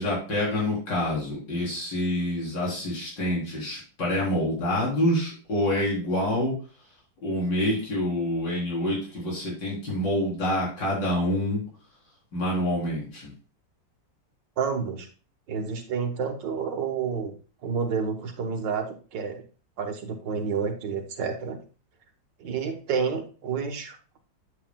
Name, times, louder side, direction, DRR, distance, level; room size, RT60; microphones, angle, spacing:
voice 1, 0.0-6.5 7.2-11.6 12.3-13.3, left 1 dB, 70° left, -5 dB, 4.4 m, -27 dB
voice 2, 14.6-15.1 15.5-17.3 17.6-19.4 19.8-21.6 22.4-24.2, right 6 dB, 70° right, 4 dB, 1.9 m, -29 dB
9.1 x 8.4 x 2.3 m, 0.36 s
omnidirectional pair, 2.0 m